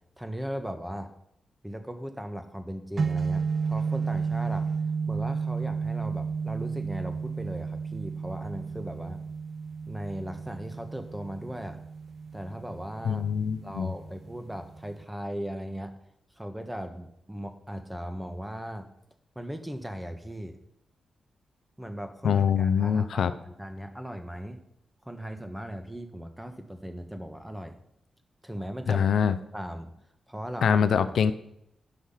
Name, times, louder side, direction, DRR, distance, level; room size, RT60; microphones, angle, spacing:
voice 1, 0.2-1.1 1.6-4.7 5.1-9.2 9.9-11.8 12.3-13.3 13.6-15.9 16.4-18.9 19.3-20.6 21.8-24.6 25.0-27.8 28.4-29.9 30.3-31.1, equal, 10° right, 7 dB, 1.4 m, -38 dB
sound 1, 3.0-15.0, right 5 dB, 55° right, 0.9 m, -33 dB
voice 2, 13.0-13.9 22.2-23.3 28.9-29.4 30.6-31.3, left 7 dB, 75° left, 12 dB, 0.6 m, -24 dB
10.0 x 6.1 x 5.7 m, 0.79 s
supercardioid pair, 45°, 0 cm